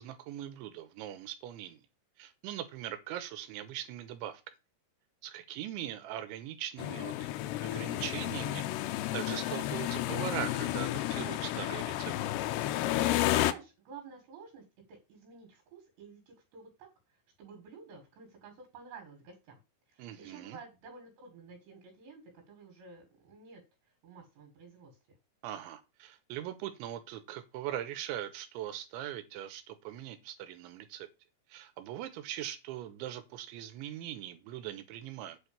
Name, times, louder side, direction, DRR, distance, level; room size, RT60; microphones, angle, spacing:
voice 1, 0.0-1.8 2.2-4.4 5.2-7.3 7.6-12.1 20.0-20.6 25.4-31.1 31.5-35.4, right 12 dB, 90° right, 3.4 m, -41 dB
sound 1, 6.8-13.5, left 14 dB, 80° left, 2.7 m, -32 dB
voice 2, 13.2-19.6 19.9-23.6 24.0-24.9, right 5 dB, 70° right, 4.2 m, -52 dB
8.5 x 4.7 x 6.9 m
omnidirectional pair, 5.3 m